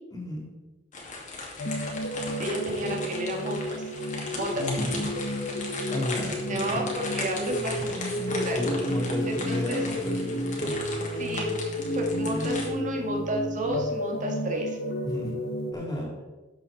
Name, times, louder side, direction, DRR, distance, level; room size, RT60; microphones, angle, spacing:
voice 1, 0.1-0.5 4.6-5.0 5.9-6.8 8.2-10.8 12.1-12.5 15.0-15.4 15.7-16.1, left 1 dB, 20° left, -2 dB, 3.3 m, -33 dB
sound 1, 0.9-12.7, left 3 dB, 40° left, 2.4 m, -38 dB
sound 2, 1.6-15.7, left 1 dB, 55° left, 1.2 m, -31 dB
voice 2, 2.4-3.9 4.3-5.1 6.5-8.6 9.3-9.8 11.1-11.5 11.9-14.8, right 1 dB, 40° right, 1 dB, 2.1 m, -32 dB
12.5 x 7.7 x 4.3 m, 1.1 s
head